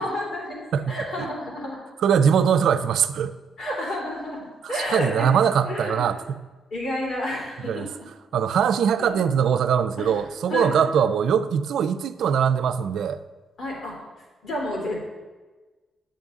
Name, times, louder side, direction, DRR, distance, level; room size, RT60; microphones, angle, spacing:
voice 1, 0.0-1.8 3.6-5.4 5.6-6.1 6.7-7.9 9.0-9.2 10.0-10.2 10.5-10.9 13.6-13.9 14.4-15.0, left 1 dB, 65° left, -3 dB, 3.2 m, -30 dB
voice 2, 0.7-1.3 2.0-3.3 4.6-6.4 7.7-7.9 8.3-13.2, right 7 dB, 75° right, 10 dB, 0.4 m, -22 dB
11.0 x 7.0 x 3.6 m, 1.2 s
cardioid pair, 140°, 0 cm